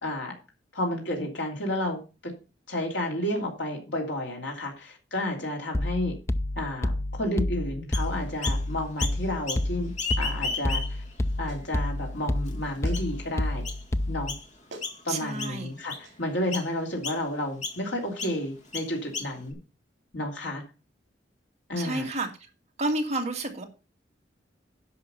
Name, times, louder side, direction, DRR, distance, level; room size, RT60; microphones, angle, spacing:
voice 1, 0.0-0.3 0.7-2.0 2.7-6.1 6.6-9.9 10.2-11.0 11.4-13.6 14.1-14.3 15.0-19.6 20.1-20.6 21.7-22.1, left 1 dB, 70° left, 3.1 m, -31 dB
sound 1, 5.7-14.4, left 1 dB, 15° left, 0.4 m, -30 dB
Chirp tweet, 7.9-8.6 9.0-9.7 9.9-11.1 11.7-11.8 12.5-12.6 12.9-13.2 13.6-13.8 14.3-14.5 14.8-15.1 15.4-16.1 16.5-16.7 17.0-17.2 17.6-17.8 18.2-18.4 18.7-19.5, left 4 dB, 40° left, 2.0 m, -34 dB
Clapping, 11.5-11.7 12.8-13.0 14.3-14.4 14.7-15.0 16.0-16.2, right 2 dB, 70° right, 2.5 m, -45 dB
voice 2, 15.1-15.7 21.8-22.3 22.8-23.6, right 2 dB, 40° right, 2.1 m, -30 dB
10.5 x 5.9 x 5.6 m
head